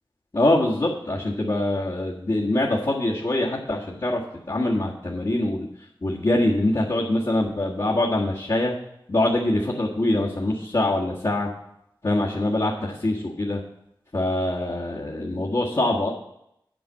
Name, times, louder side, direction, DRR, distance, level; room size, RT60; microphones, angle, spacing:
voice 1, 0.3-4.2 4.5-5.7 6.0-8.7 9.1-11.5 12.0-13.6 14.1-16.1, left 1 dB, 55° left, -5 dB, 1.7 m, -24 dB
9.2 x 5.0 x 7.8 m, 0.78 s
wide cardioid pair, 50°, 9 cm